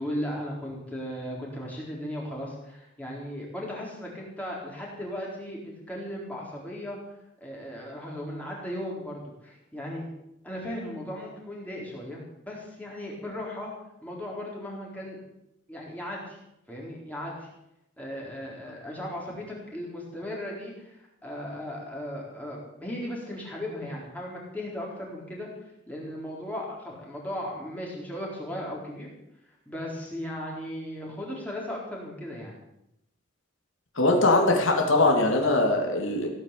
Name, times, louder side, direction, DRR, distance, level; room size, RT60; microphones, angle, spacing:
voice 1, 0.0-7.0 7.4-10.0 10.4-13.7 14.0-15.2 15.7-16.4 16.7-17.5 18.0-25.5 25.9-29.1 29.7-32.5, left 1 dB, 5° left, -3 dB, 4.2 m, -36 dB
voice 2, 34.0-36.3, left 2 dB, 80° left, 1 dB, 2.9 m, -21 dB
17.0 x 9.3 x 8.5 m, 0.84 s
head